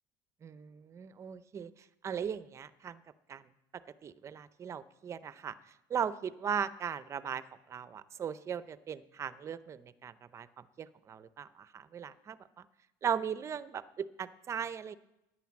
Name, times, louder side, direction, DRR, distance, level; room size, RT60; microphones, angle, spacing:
voice 1, 0.4-1.7 2.0-3.0 3.3-3.4 4.0-5.5 5.9-12.7 13.0-14.9, right 8 dB, 30° right, 15 dB, 0.6 m, -38 dB
11.0 x 9.3 x 7.4 m, 0.91 s
cardioid pair, 130°, 10 cm